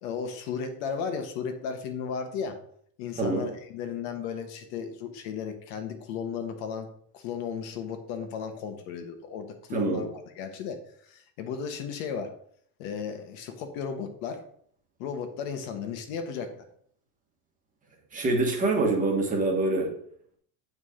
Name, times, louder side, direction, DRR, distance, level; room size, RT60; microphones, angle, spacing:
voice 1, 0.0-2.6 3.0-6.9 7.1-10.1 10.4-12.3 12.8-14.4 15.0-16.7, left 6 dB, 65° left, 6 dB, 1.4 m, -35 dB
voice 2, 3.2-3.5 9.7-10.1 18.1-19.9, right 2 dB, 15° right, 0 dB, 1.2 m, -25 dB
7.8 x 4.8 x 4.9 m, 0.62 s
cardioid pair, 175°, 45 cm